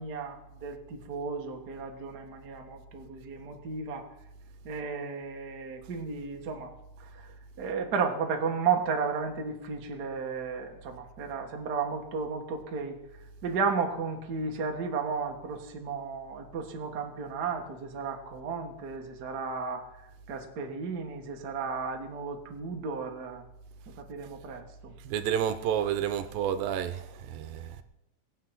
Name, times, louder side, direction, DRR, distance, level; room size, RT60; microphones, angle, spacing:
voice 1, 0.0-4.1 4.6-13.0 13.4-23.4 24.0-24.9, right 5 dB, 55° right, 1.1 m, -34 dB
voice 2, 25.0-27.8, right 9 dB, 75° right, 2.4 m, -30 dB
19.0 x 8.4 x 5.8 m
omnidirectional pair, 4.2 m